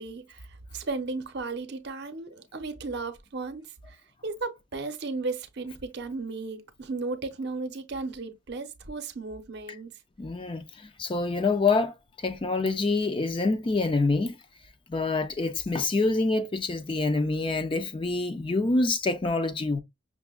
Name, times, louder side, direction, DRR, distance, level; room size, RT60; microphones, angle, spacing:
voice 1, 0.0-4.0 4.2-9.9, right 3 dB, 55° right, 0.6 m, -35 dB
voice 2, 10.2-11.9 12.2-14.4 14.9-19.8, left 3 dB, 25° left, 0.4 m, -26 dB
5.9 x 2.1 x 2.3 m
head